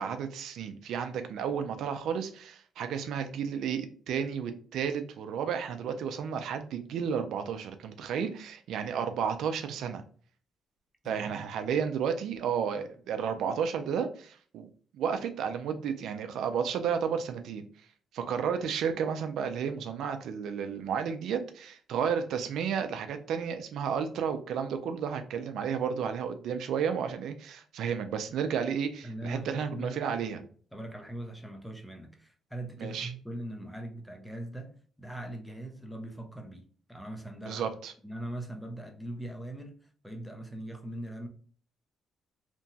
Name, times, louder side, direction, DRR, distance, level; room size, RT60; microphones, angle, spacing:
voice 1, 0.0-10.0 11.1-17.6 18.1-30.4 32.8-33.1 37.5-37.9, right 7 dB, 80° right, 0.3 m, -32 dB
voice 2, 11.0-11.4 29.0-30.4 30.7-37.7 38.0-41.3, right 1 dB, 5° left, 0.6 m, -41 dB
2.9 x 2.2 x 2.7 m
cardioid pair, 90°, 0 cm